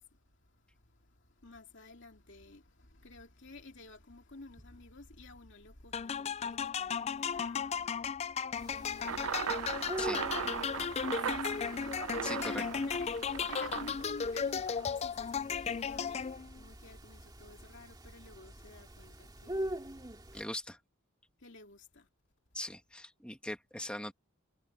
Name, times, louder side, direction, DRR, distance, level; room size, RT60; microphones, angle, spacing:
voice 1, 0.0-8.3 8.7-9.5 11.1-13.2 13.4-20.0 21.4-22.1, left 2 dB, 55° left, 2.6 m, -52 dB
sound 1, 5.9-16.6, left 6 dB, 30° left, 0.3 m, -35 dB
sound 2, 8.5-20.4, right 1 dB, 20° right, 2.3 m, -45 dB
sound 3, 9.0-14.9, right 7 dB, 75° right, 0.5 m, -38 dB
voice 2, 12.2-12.6 20.3-20.8 22.5-24.1, left 1 dB, 5° left, 1.4 m, -40 dB
head